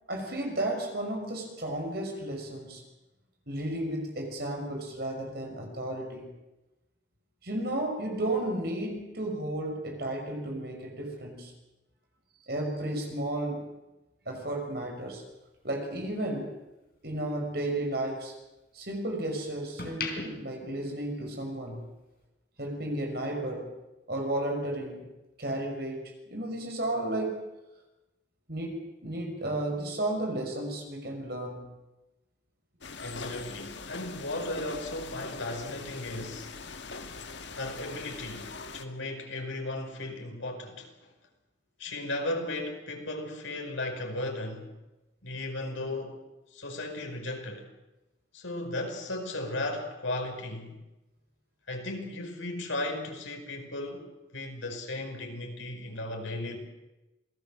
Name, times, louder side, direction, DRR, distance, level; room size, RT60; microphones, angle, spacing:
voice 1, 0.1-2.8 3.5-6.3 7.4-11.5 12.5-13.7 14.3-15.2 15.6-16.5 17.0-18.3 18.7-21.9 22.6-23.7 24.1-25.0 25.4-27.4 28.5-31.7, right 1 dB, 55° right, 6.1 m, -33 dB
sound 1, 14.9-17.3 17.7-19.1 19.5-21.7 22.0-22.2, left 4 dB, 50° left, 3.9 m, -42 dB
sound 2, 32.8-38.8, left 4 dB, 70° left, 1.5 m, -42 dB
voice 2, 33.0-36.5 37.5-41.1 41.8-44.7 45.2-46.2 46.5-47.6 48.3-50.8 51.7-56.6, left 2 dB, 85° left, 5.0 m, -36 dB
27.5 x 18.5 x 7.6 m
head